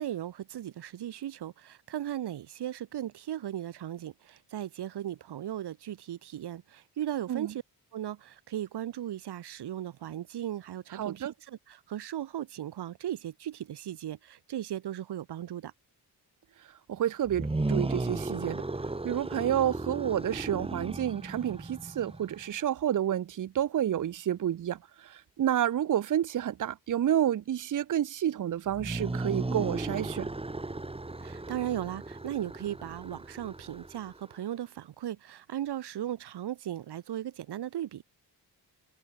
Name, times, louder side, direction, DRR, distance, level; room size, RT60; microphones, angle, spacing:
voice 1, 0.0-7.6 7.9-15.7 31.2-38.0, right 11 dB, 80° right, 3.3 m, -37 dB
voice 2, 10.9-11.3 16.9-18.6 19.0-30.3, right 10 dB, 50° right, 1.0 m, -30 dB
sound 1, 17.3-22.4 28.7-34.3, right 2 dB, 15° right, 3.8 m, -35 dB
cardioid pair, 125°, 39 cm